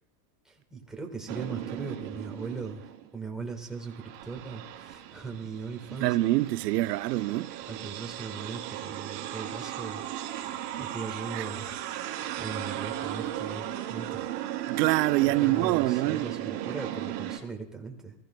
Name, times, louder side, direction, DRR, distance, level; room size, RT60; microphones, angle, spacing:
voice 1, 0.4-2.8 3.1-6.2 7.7-10.0 10.8-11.8 12.1-14.3 15.2-18.1, right 4 dB, ahead, 1.4 m, -39 dB
sound 1, 1.3-3.1 3.6-17.4, right 12 dB, 50° right, 2.6 m, -36 dB
voice 2, 6.0-7.5 11.3-11.5 14.7-16.3, right 18 dB, 80° right, 0.6 m, -25 dB
24.0 x 14.5 x 2.2 m
supercardioid pair, 160°, 48 cm